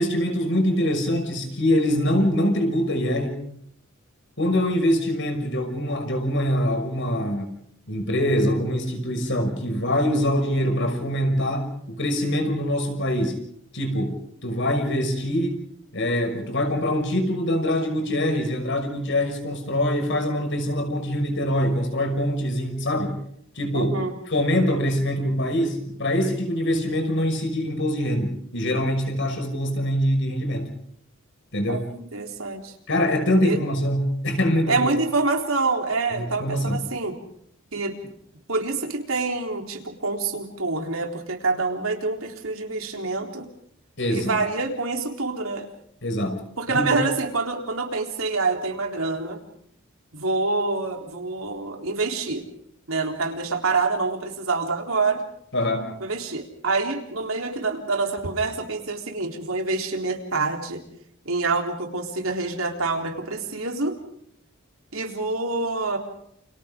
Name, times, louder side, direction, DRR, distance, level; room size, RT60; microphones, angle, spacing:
voice 1, 0.0-3.4 4.4-7.6 7.9-13.4 13.7-15.6 15.9-23.2 23.6-23.9 24.3-30.7 31.5-31.8 32.9-34.9 36.1-36.8 44.0-44.4 46.0-46.4 46.7-46.9 55.5-56.0, equal, 60° left, 5 dB, 5.9 m, -24 dB
voice 2, 23.7-24.1 31.7-32.7 33.4-33.6 34.7-37.2 37.7-38.0 38.5-43.5 44.1-45.7 46.6-49.4 50.1-52.4 52.9-55.2 56.0-60.8 61.3-64.0 64.9-66.0, right 3 dB, 90° right, 3 dB, 3.9 m, -26 dB
29.5 x 28.5 x 3.8 m, 0.71 s
head